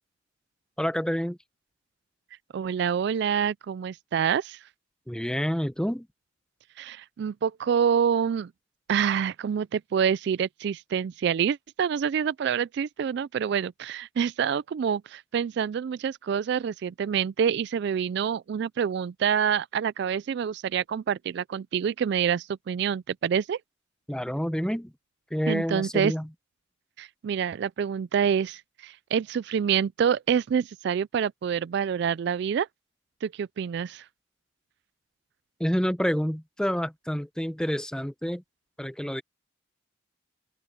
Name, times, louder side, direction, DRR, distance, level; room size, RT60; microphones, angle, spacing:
voice 1, 0.8-1.4 5.1-6.1 24.1-24.9 25.3-26.3 35.6-38.4 38.8-39.2, equal, 5° left, 0.8 m, -28 dB
voice 2, 2.5-4.6 6.8-8.5 8.9-23.6 25.5-26.1 27.0-32.7 33.2-34.0, right 7 dB, 60° right, 0.3 m, -27 dB
open air
head